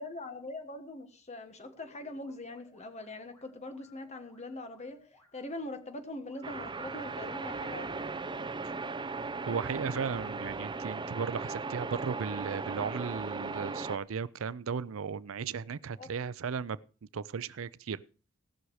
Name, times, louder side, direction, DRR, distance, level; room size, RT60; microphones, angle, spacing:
voice 1, 0.0-5.0 5.3-8.0 16.0-16.1, left 2 dB, 30° left, 1.5 m, -42 dB
sound 1, 1.6-7.5, left 1 dB, 15° left, 2.3 m, -63 dB
sound 2, 6.4-14.0, right 3 dB, 20° right, 0.6 m, -37 dB
voice 2, 9.5-16.8 17.1-18.0, right 6 dB, 75° right, 0.5 m, -35 dB
18.0 x 6.3 x 4.8 m
head